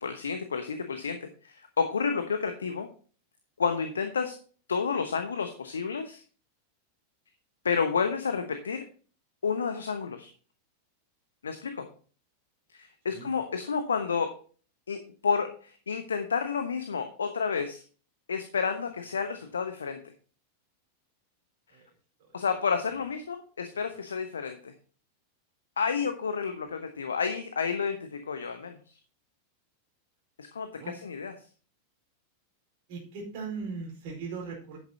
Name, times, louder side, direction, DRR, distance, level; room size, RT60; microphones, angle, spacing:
voice 1, 0.0-2.9 3.6-4.4 4.7-6.2 7.6-8.9 9.4-10.3 11.4-11.9 12.7-14.4 14.9-17.8 18.3-20.0 22.3-24.7 25.8-29.0 30.4-31.3, left 5 dB, 70° left, 8 dB, 1.0 m, -30 dB
voice 2, 32.9-34.8, right 4 dB, 50° right, -2 dB, 4.7 m, -39 dB
11.0 x 9.0 x 2.8 m, 0.39 s
figure-of-eight pair, 90°, 0 cm